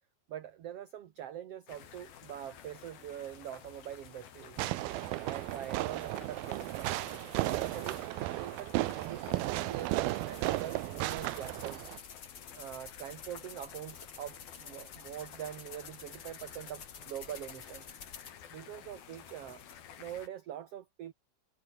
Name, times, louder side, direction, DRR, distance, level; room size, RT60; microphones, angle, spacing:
voice 1, 0.3-4.6 5.2-6.9 7.6-9.2 9.5-11.9 12.5-17.9 18.5-19.6 20.0-21.1, right 11 dB, 60° right, 1.6 m, -44 dB
sound 1, 1.7-20.3, left 9 dB, 80° left, 4.5 m, -53 dB
Fireworks, 4.6-12.0, right 18 dB, 90° right, 2.6 m, -34 dB
sound 2, 5.4-8.1 8.5-18.4 19.1-19.7, left 6 dB, 40° left, 2.2 m, -52 dB
omnidirectional pair, 4.2 m